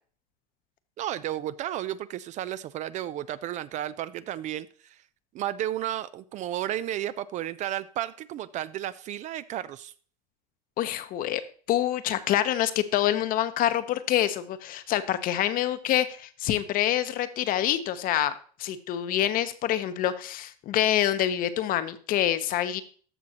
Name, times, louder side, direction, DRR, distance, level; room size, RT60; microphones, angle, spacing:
voice 1, 1.0-5.0 5.3-9.9, right 12 dB, 35° right, 16 dB, 0.4 m, -33 dB
voice 2, 10.8-11.4 11.7-18.3 18.6-22.8, left 12 dB, 45° left, 11 dB, 0.9 m, -26 dB
14.0 x 5.9 x 2.9 m, 0.43 s
supercardioid pair, 105°, 21 cm